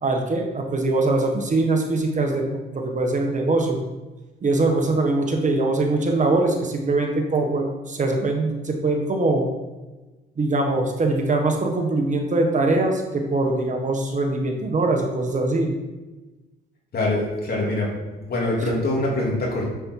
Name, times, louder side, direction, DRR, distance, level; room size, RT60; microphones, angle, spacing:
voice 1, 0.0-2.4 2.7-3.8 4.4-9.5 10.4-15.7, right 2 dB, 40° right, 3 dB, 1.4 m, -22 dB
voice 2, 16.9-17.9 18.2-19.7, left 2 dB, 50° left, -3 dB, 3.1 m, -24 dB
7.4 x 7.0 x 4.8 m, 1.2 s
cardioid pair, 90°, 20 cm